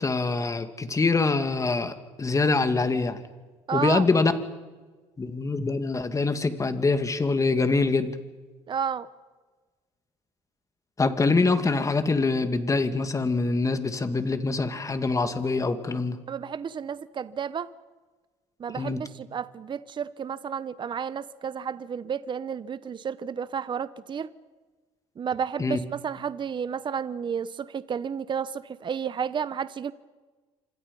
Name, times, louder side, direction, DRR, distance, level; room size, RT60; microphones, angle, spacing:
voice 1, 0.0-3.2 3.7-4.3 5.2-8.1 11.0-16.2 18.7-19.0 25.6-25.8, left 3 dB, 25° left, 2.6 m, -24 dB
voice 2, 3.7-4.1 8.7-9.1 16.3-17.7 18.6-24.3 25.2-29.9, right 7 dB, 35° right, 1.0 m, -31 dB
27.5 x 26.0 x 5.6 m
supercardioid pair, 85°, 13 cm